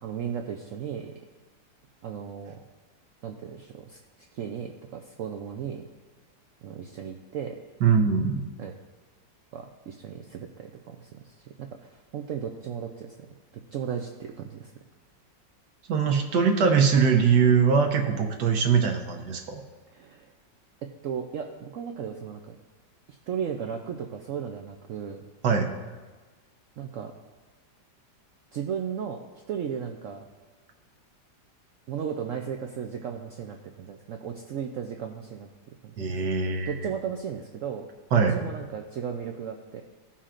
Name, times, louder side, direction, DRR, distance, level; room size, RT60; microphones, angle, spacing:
voice 1, 0.0-1.1 2.0-2.6 3.2-5.9 6.6-7.5 8.6-8.8 9.5-14.7 19.9-20.3 20.8-22.6 23.1-25.2 26.8-27.1 28.5-29.2 29.5-30.2 31.9-35.5 35.8-36.0 36.7-37.9 38.3-39.8, right 7 dB, 85° right, 3 dB, 0.7 m, -35 dB
voice 2, 7.8-8.4 15.9-19.6 25.4-25.7 36.0-36.7 38.1-38.4, right 6 dB, 70° right, 3 dB, 1.4 m, -22 dB
16.5 x 5.7 x 2.5 m, 1.3 s
omnidirectional pair, 2.0 m